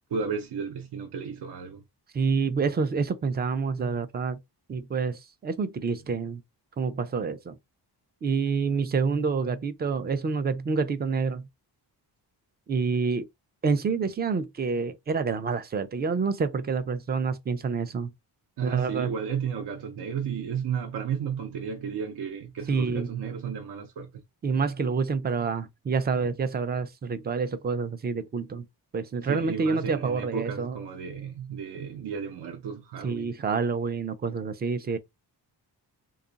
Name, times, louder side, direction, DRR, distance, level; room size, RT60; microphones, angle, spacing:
voice 1, 0.1-1.8 18.6-24.2 29.2-33.3, right 7 dB, 70° right, 0.7 m, -33 dB
voice 2, 2.1-4.4 4.7-6.4 6.8-7.6 8.2-11.5 12.7-13.3 13.6-18.1 18.6-19.1 22.7-23.1 24.4-28.7 28.9-30.8 33.0-35.0, right 5 dB, 25° right, 0.3 m, -28 dB
3.6 x 2.4 x 3.9 m
wide cardioid pair, 180°, 42 cm